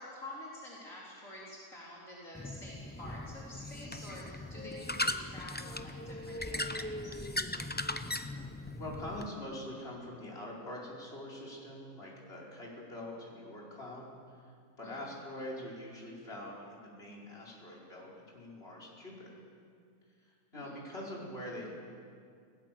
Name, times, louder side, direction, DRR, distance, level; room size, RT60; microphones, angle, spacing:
voice 1, 0.0-7.1 14.8-15.1 20.5-20.7, left 1 dB, 60° left, -6 dB, 4.4 m, -48 dB
sound 1, 2.3-9.3, left 1 dB, 15° left, 0.3 m, -38 dB
voice 2, 8.8-14.5 14.8-19.3 20.2-21.7, left 1 dB, 40° left, -4 dB, 5.1 m, -44 dB
29.0 x 18.0 x 7.6 m, 2.2 s
omnidirectional pair, 1.6 m